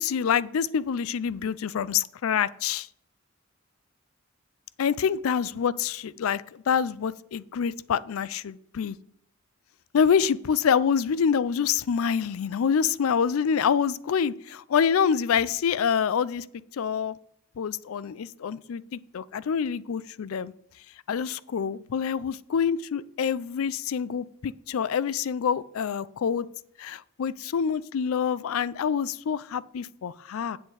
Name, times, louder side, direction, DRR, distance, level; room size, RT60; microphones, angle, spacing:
voice 1, 0.0-2.9 4.8-9.0 9.9-16.4 16.8-17.1 17.6-20.5 21.1-26.5 26.8-30.6, left 7 dB, 85° left, 19 dB, 0.4 m, -26 dB
8.3 x 7.8 x 4.8 m, 0.72 s
head